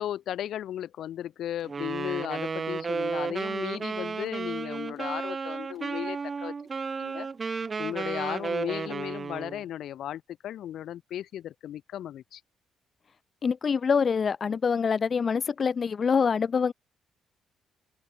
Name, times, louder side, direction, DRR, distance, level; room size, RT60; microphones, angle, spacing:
voice 1, 0.0-6.5 7.0-12.4, left 11 dB, 75° left, 1.9 m, -35 dB
Wind instrument woodwind instrument, 1.6-9.6, right 5 dB, 35° right, 0.8 m, -33 dB
voice 2, 13.4-16.7, left 6 dB, 45° left, 0.4 m, -25 dB
open air
cardioid pair, 90°, 0 cm